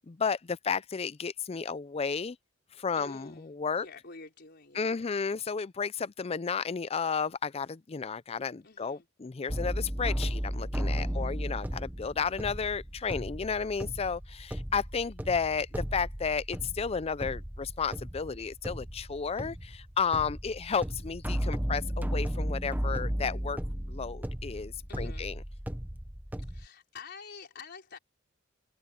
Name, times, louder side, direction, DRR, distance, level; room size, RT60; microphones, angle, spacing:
voice 1, 0.0-2.4 2.8-3.9 4.8-23.6 23.9-25.3, left 5 dB, 30° left, 0.4 m, -32 dB
voice 2, 2.9-5.1 8.6-9.1 11.0-11.4 24.9-25.3 26.4-28.0, left 4 dB, 55° left, 4.3 m, -49 dB
sound 1, 9.5-26.7, equal, 10° right, 1.1 m, -35 dB
head